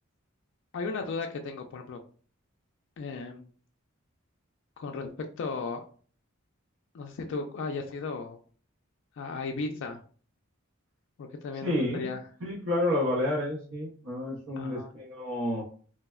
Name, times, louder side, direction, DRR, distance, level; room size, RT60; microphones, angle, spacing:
voice 1, 0.7-2.0 3.0-3.5 4.8-5.1 5.4-5.9 6.9-8.4 9.2-10.0 11.2-12.2 14.6-14.9, left 4 dB, 60° left, 4 dB, 0.3 m, -35 dB
voice 2, 11.6-12.1 12.4-15.6, left 1 dB, 65° right, -5 dB, 0.7 m, -30 dB
3.2 x 2.0 x 2.3 m, 0.42 s
head